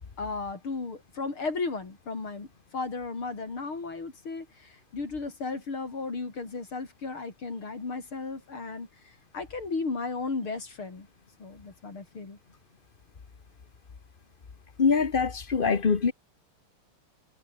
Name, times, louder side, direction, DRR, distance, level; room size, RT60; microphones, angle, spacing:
voice 1, 0.2-11.1 11.4-12.4, left 4 dB, 70° left, 5.3 m, -35 dB
voice 2, 14.8-16.1, left 5 dB, 35° left, 1.0 m, -23 dB
omnidirectional pair, 2.4 m